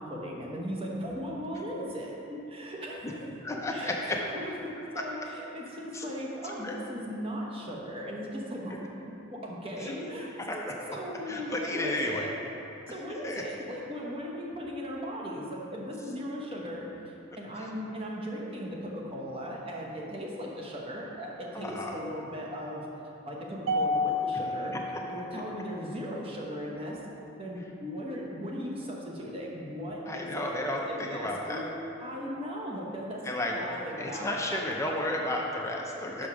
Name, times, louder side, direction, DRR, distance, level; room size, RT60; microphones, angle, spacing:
voice 1, 0.0-10.3 10.9-12.3 12.9-22.9 23.3-24.8 25.1-27.0 27.4-33.3 33.5-35.0 36.2-36.3, equal, 30° right, -3 dB, 0.9 m, -38 dB
voice 2, 3.4-4.2 5.9-6.0 6.4-6.7 9.8-9.9 10.4-10.9 11.3-12.3 13.2-13.4 21.5-22.0 30.1-31.6 33.2-33.6 34.0-36.3, left 1 dB, 15° left, 0 dB, 0.5 m, -33 dB
Mallet percussion, 23.7-26.1, left 2 dB, 75° right, 0.6 m, -31 dB
6.0 x 5.0 x 6.0 m, 3.0 s
head